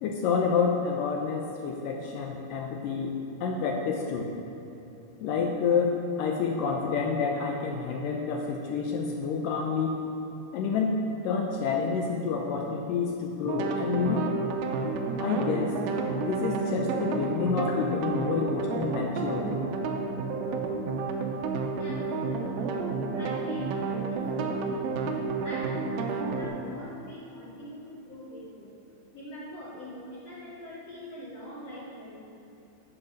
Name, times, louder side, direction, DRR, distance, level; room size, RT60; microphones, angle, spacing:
voice 1, 0.0-3.1 3.4-4.3 5.2-10.0 10.5-10.9 11.2-14.2 15.2-15.7 16.3-19.5, left 5 dB, 80° left, 1 dB, 2.0 m, -28 dB
sound 1, 13.4-26.5, right 4 dB, 80° right, 2.5 m, -30 dB
voice 2, 21.8-24.9 25.4-28.8 29.1-32.4, equal, 60° left, -7 dB, 1.8 m, -44 dB
10.5 x 4.9 x 6.4 m, 3.0 s
omnidirectional pair, 4.4 m